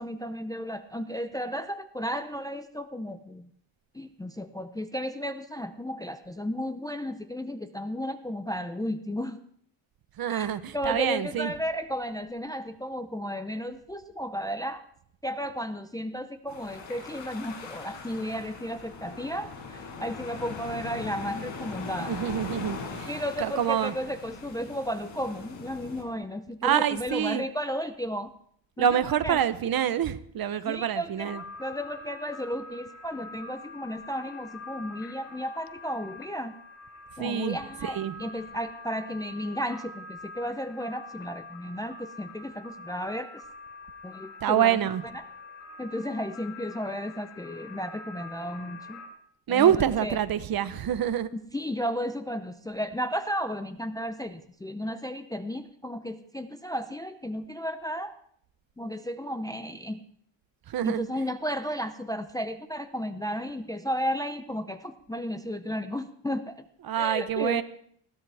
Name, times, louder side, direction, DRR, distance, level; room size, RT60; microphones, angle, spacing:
voice 1, 0.0-3.5 3.9-9.4 10.3-14.8 15.2-22.1 23.1-28.3 28.8-29.4 30.7-31.3 31.6-36.5 37.2-43.4 44.0-44.8 45.1-45.2 45.8-49.0 49.5-49.7 50.0-50.2 51.5-58.1 58.8-60.0 60.8-66.6 67.0-67.6, equal, 10° left, 8 dB, 0.5 m, -33 dB
voice 2, 10.2-11.5 22.1-23.1 23.4-23.9 26.6-27.5 28.8-31.4 37.2-37.6 37.8-38.1 44.4-45.0 49.5-51.3 60.7-61.1 66.8-67.6, right 10 dB, 45° right, 12 dB, 0.9 m, -26 dB
sound 1, 16.5-26.0, left 5 dB, 65° left, 5.2 m, -40 dB
sound 2, 31.2-49.1, left 3 dB, 90° left, 4.5 m, -45 dB
20.5 x 16.5 x 3.5 m, 0.64 s
cardioid pair, 140°, 48 cm